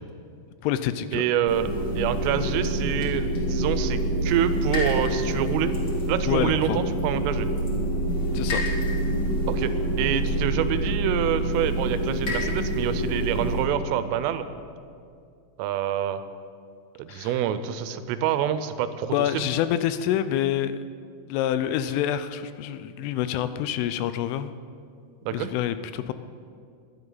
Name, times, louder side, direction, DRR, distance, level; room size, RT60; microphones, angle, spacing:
voice 1, 0.6-1.3 6.3-6.8 8.3-8.6 17.1-17.3 19.1-20.8 21.3-24.5 25.3-26.1, left 11 dB, 85° left, 12 dB, 3.0 m, -27 dB
voice 2, 1.1-1.7 2.0-5.8 6.1-7.5 9.5-14.5 15.6-16.2 17.0-19.5 25.3-25.5, right 10 dB, 90° right, 11 dB, 3.3 m, -27 dB
sound 1, 1.4-13.6, right 1 dB, 60° left, 1.0 m, -26 dB
22.0 x 11.0 x 3.9 m, 2.3 s
omnidirectional pair, 5.7 m